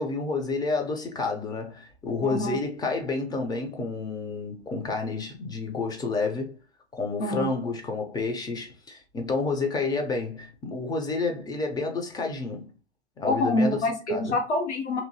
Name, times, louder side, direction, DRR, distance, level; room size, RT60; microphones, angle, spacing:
voice 1, 0.0-6.6 6.9-12.7 13.2-13.8 14.1-14.3, left 3 dB, 10° left, 0.5 m, -30 dB
voice 2, 2.2-2.6 7.2-7.5 13.2-15.0, left 2 dB, 90° left, 1.0 m, -26 dB
2.7 x 2.5 x 2.6 m
hypercardioid pair, 105°, 34 cm